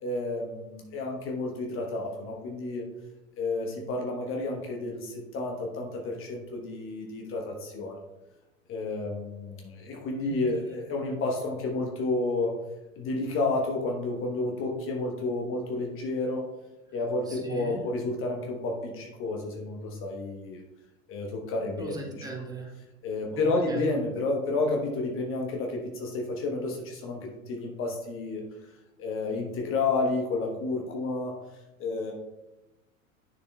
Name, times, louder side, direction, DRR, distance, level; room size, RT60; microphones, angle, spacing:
voice 1, 0.0-2.9 3.4-8.0 8.7-12.5 13.0-16.4 16.9-20.6 21.1-22.3 23.0-28.4 29.0-31.3 31.8-32.1, left 2 dB, 30° left, 0 dB, 1.2 m, -31 dB
voice 2, 17.3-17.8 21.8-22.7 23.3-23.9, right 4 dB, 10° right, -2 dB, 1.5 m, -39 dB
9.4 x 6.7 x 2.3 m, 1.0 s
figure-of-eight pair, 85°, 42 cm